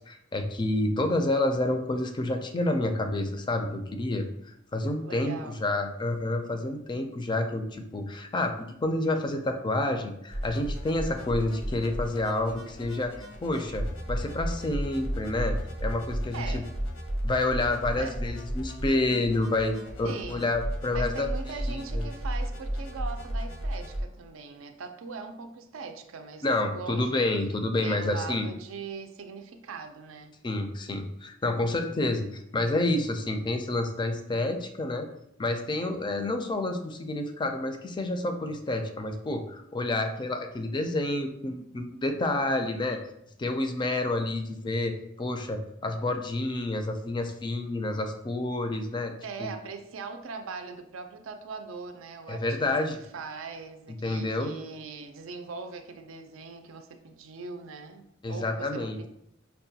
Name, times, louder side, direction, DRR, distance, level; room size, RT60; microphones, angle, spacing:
voice 1, 0.1-13.1 13.4-16.6 17.2-19.7 20.0-22.1 26.4-28.5 30.4-35.1 35.4-43.0 43.4-49.1 49.4-49.5 52.3-53.0 54.0-54.5 58.2-59.0, left 2 dB, 25° left, 6 dB, 0.4 m, -29 dB
voice 2, 5.0-5.6 16.3-16.7 18.0-18.2 20.0-20.5 20.9-26.5 26.7-30.3 49.2-52.7 53.1-59.1, right 4 dB, 80° right, 7 dB, 0.4 m, -41 dB
sound 1, 10.3-24.0, equal, 90° left, 0.8 m, -34 dB
5.5 x 2.2 x 2.7 m, 0.78 s
head